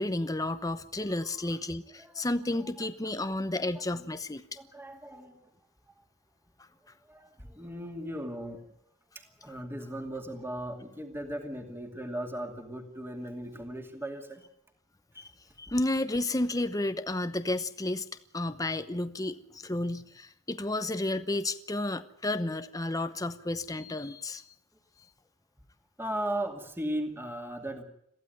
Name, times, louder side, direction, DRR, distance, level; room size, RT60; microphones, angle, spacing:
voice 1, 0.0-4.4 15.2-15.3 15.6-18.1 18.3-24.4, left 2 dB, 15° left, 10 dB, 0.9 m, -32 dB
voice 2, 1.1-1.5 2.0-2.3 3.6-4.1 4.6-5.5 5.9-6.0 7.0-8.7 9.1-14.4 15.1-15.2 26.0-27.8, right 1 dB, 10° right, 5 dB, 2.5 m, -38 dB
22.5 x 15.5 x 9.2 m, 0.75 s
head